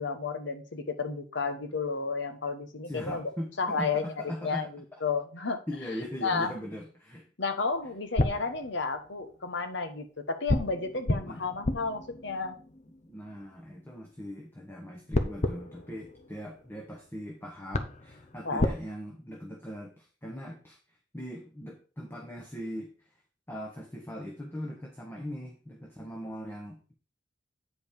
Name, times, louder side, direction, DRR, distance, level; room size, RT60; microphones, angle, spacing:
voice 1, 0.0-5.6 6.2-6.5 7.4-12.5 18.4-18.7, left 4 dB, 65° left, 7 dB, 1.2 m, -32 dB
voice 2, 2.8-4.7 5.7-7.2 11.2-11.4 13.0-20.8 21.1-22.9 23.5-26.9, equal, 10° left, 0 dB, 1.2 m, -40 dB
sound 1, 7.7-9.3 10.5-13.8 15.1-17.0 17.4-17.5 17.7-18.8, left 1 dB, 40° left, 0.8 m, -32 dB
8.8 x 5.2 x 4.9 m, 0.37 s
head